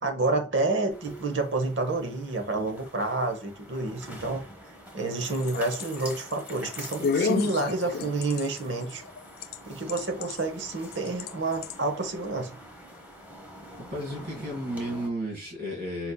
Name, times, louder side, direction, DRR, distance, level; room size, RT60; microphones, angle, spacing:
voice 1, 0.0-4.4 4.9-9.0 9.6-12.5, right 2 dB, 90° right, 0.9 m, -29 dB
sound 1, 0.9-15.1, equal, 10° right, 1.0 m, -46 dB
sound 2, 5.2-9.6 9.9-10.4 10.9-11.3 11.6-11.7, left 5 dB, 60° left, 0.3 m, -30 dB
voice 2, 13.9-16.1, equal, 65° right, 2.1 m, -33 dB
4.1 x 4.0 x 2.2 m
head